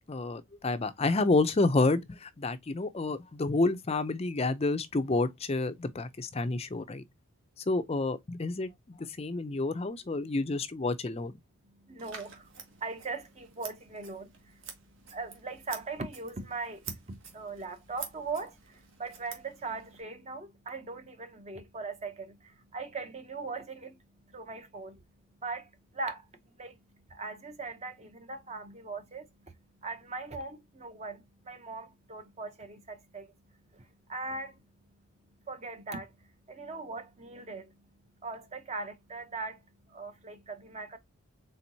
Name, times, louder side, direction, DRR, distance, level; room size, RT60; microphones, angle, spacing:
voice 1, 0.1-7.0 7.7-8.7 9.2-11.4, left 3 dB, 30° left, 0.5 m, -29 dB
voice 2, 11.7-24.0 24.3-25.0 25.4-26.3 26.6-26.8 27.1-29.5 29.8-33.3 33.7-34.6 35.5-37.8 38.2-41.0, right 3 dB, 30° right, 0.7 m, -40 dB
Scissors, 12.0-20.0, right 6 dB, 65° right, 1.4 m, -48 dB
4.4 x 3.8 x 2.7 m
head